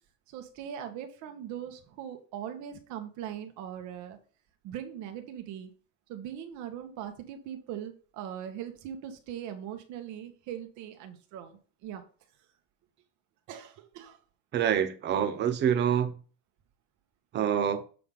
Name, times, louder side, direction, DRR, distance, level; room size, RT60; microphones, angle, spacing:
voice 1, 0.3-4.2 4.6-5.7 6.1-12.0 13.5-14.2, right 9 dB, 50° right, 1.5 m, -40 dB
voice 2, 14.5-16.1 17.3-17.8, right 9 dB, 30° right, 0.7 m, -26 dB
7.7 x 3.4 x 5.5 m
cardioid pair, 180°, 37 cm